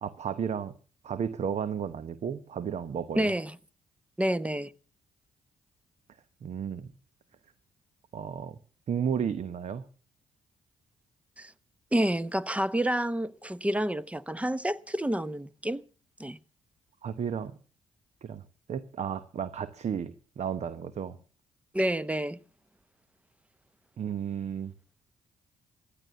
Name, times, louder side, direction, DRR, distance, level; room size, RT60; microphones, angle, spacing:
voice 1, 0.0-0.8 1.0-3.3 6.4-6.9 8.1-8.6 8.9-9.8 17.0-17.6 18.2-18.4 18.7-21.2 24.0-24.7, right 8 dB, 55° right, 1.0 m, -33 dB
voice 2, 3.1-3.6 4.2-4.7 11.4-11.5 11.9-15.8 16.2-16.4 21.7-22.4, right 1 dB, 10° right, 0.8 m, -29 dB
15.5 x 10.0 x 6.9 m
supercardioid pair, 50°, 14 cm